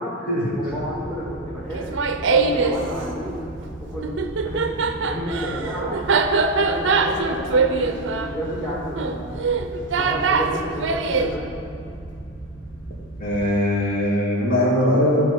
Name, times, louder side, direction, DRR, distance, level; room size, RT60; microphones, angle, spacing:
voice 1, 0.5-1.9 2.2-3.4 3.8-6.0 6.5-9.5 9.9-11.5, equal, 10° left, -9 dB, 2.0 m, -31 dB
sound 1, 0.7-13.5, right 2 dB, 10° right, 2.3 m, -37 dB
Laughter, 1.7-2.8 4.0-11.3, right 4 dB, 70° right, 0.5 m, -22 dB
voice 2, 13.2-15.2, left 1 dB, 45° left, -6 dB, 2.5 m, -20 dB
14.0 x 4.8 x 4.5 m, 2.5 s
head